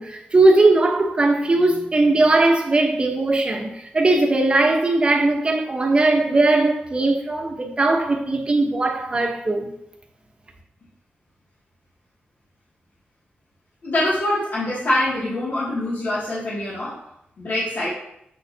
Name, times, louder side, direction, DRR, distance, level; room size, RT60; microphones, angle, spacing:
voice 1, 0.0-9.7, right 2 dB, 30° right, 1.1 m, -19 dB
voice 2, 13.8-17.0 17.4-17.9, left 1 dB, 60° left, 2.4 m, -24 dB
7.4 x 6.5 x 2.9 m
wide cardioid pair, 125°, 4 cm